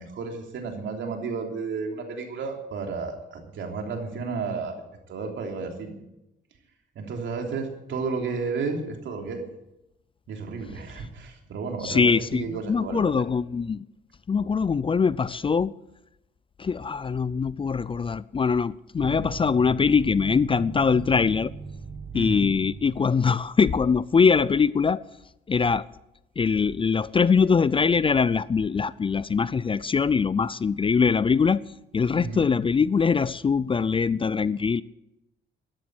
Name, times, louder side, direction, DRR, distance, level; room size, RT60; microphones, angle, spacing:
voice 1, 0.0-6.0 6.9-9.5 10.3-13.3 22.1-22.5 32.1-32.5, right 4 dB, 70° right, 3.3 m, -32 dB
voice 2, 11.8-13.8 14.3-15.7 16.6-21.5 22.1-25.0 25.5-25.9 26.4-31.6 31.9-34.8, left 5 dB, 25° left, 0.4 m, -22 dB
sound 1, 19.0-23.5, right 5 dB, 90° right, 6.4 m, -39 dB
13.0 x 11.0 x 7.8 m
cardioid pair, 90°, 20 cm